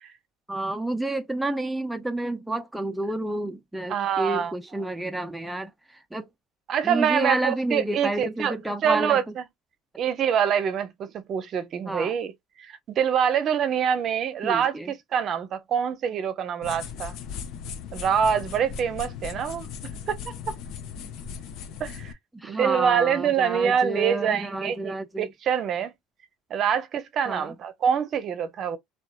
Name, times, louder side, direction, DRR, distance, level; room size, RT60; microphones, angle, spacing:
voice 1, 0.5-6.3 6.8-9.3 11.9-12.1 14.4-14.9 22.3-25.3 27.3-27.5, right 1 dB, 5° right, 0.4 m, -30 dB
voice 2, 3.9-4.5 6.7-9.4 10.0-12.3 12.6-17.2 17.9-19.7 20.1-20.2 20.5-20.6 21.8-22.1 22.4-25.9 26.5-28.8, right 8 dB, 50° right, 0.6 m, -25 dB
sound 1, 16.6-22.1, left 7 dB, 65° left, 0.5 m, -38 dB
2.9 x 2.3 x 2.3 m
supercardioid pair, 80°, 0 cm